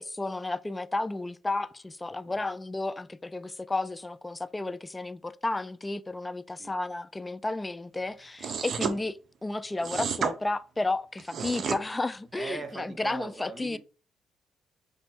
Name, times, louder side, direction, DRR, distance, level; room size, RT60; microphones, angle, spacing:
voice 1, 0.0-13.8, left 2 dB, 15° left, 0.3 m, -32 dB
sound 1, 8.4-9.0 9.8-10.3 11.2-11.8, right 6 dB, 55° right, 0.6 m, -31 dB
voice 2, 12.3-13.8, right 4 dB, 30° right, 1.0 m, -41 dB
5.3 x 2.2 x 4.2 m
cardioid pair, 95°, 0 cm